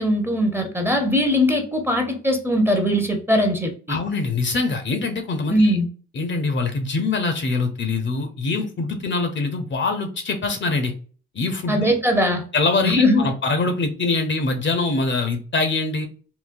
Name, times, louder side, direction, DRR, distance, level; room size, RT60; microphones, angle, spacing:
voice 1, 0.0-4.0 5.5-5.9 11.7-12.4 12.8-13.3, left 1 dB, 10° right, 3 dB, 0.7 m, -20 dB
voice 2, 3.9-5.8 6.1-10.9 11.3-11.9 12.5-16.1, left 3 dB, 40° left, 6 dB, 0.6 m, -24 dB
3.8 x 2.1 x 2.5 m, 0.40 s
cardioid pair, 90°, 30 cm